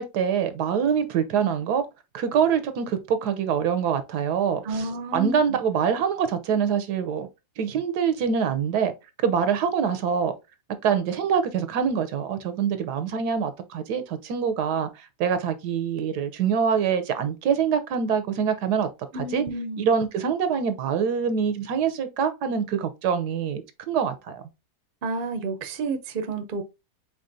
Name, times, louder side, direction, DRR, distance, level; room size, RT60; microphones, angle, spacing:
voice 1, 0.0-1.8 2.1-4.9 5.1-7.3 7.6-8.9 9.2-10.3 10.8-18.9 19.1-19.4 19.8-24.4, right 7 dB, 80° right, 1.3 m, -25 dB
voice 2, 4.6-5.6 19.1-19.8 25.0-26.6, right 3 dB, 45° right, 0.7 m, -30 dB
4.9 x 4.0 x 2.6 m
omnidirectional pair, 1.7 m